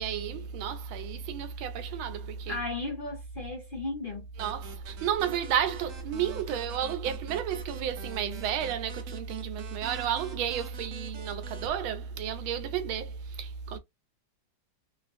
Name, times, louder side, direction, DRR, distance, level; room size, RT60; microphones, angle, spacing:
voice 1, 0.0-2.6 4.4-13.8, right 8 dB, 90° right, 1.4 m, -32 dB
voice 2, 2.5-4.3, left 3 dB, 65° left, 0.5 m, -35 dB
sound 1, 4.4-11.7, right 6 dB, 60° right, 0.8 m, -48 dB
3.2 x 2.4 x 2.5 m
omnidirectional pair, 2.2 m